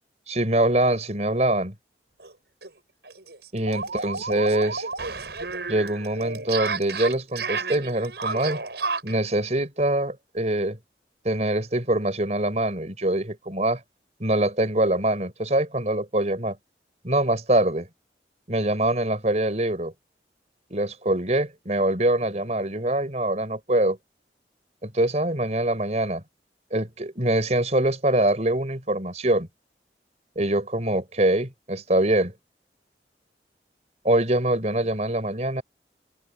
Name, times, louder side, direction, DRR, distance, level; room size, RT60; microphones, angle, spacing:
voice 1, 0.3-1.7 3.5-4.9 5.7-8.6 9.0-10.8 11.2-13.8 14.2-16.6 17.0-17.9 18.5-19.9 20.7-24.0 24.8-26.2 26.7-29.5 30.4-32.3 34.0-35.6, right 1 dB, 40° right, 4.5 m, -24 dB
sound 1, 2.2-2.3 2.6-2.7 3.1-9.2, right 4 dB, 75° right, 6.1 m, -31 dB
head